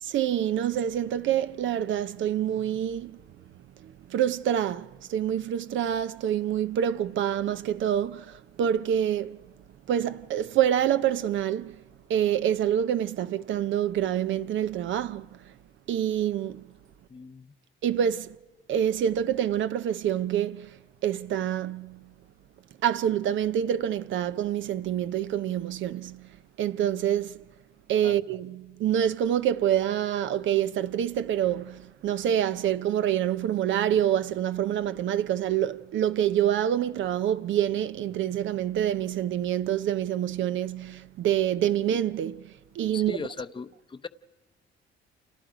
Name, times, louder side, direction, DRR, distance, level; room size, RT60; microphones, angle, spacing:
voice 1, 0.0-3.2 3.5-9.5 9.9-11.8 12.1-15.5 15.9-16.7 17.8-18.4 18.7-22.1 22.8-27.4 27.9-43.2, right 10 dB, 75° right, 0.7 m, -27 dB
voice 2, 17.1-17.5 28.0-28.2 42.9-44.1, left 5 dB, 25° left, 0.8 m, -38 dB
29.0 x 28.0 x 5.0 m
cardioid pair, 90°, 20 cm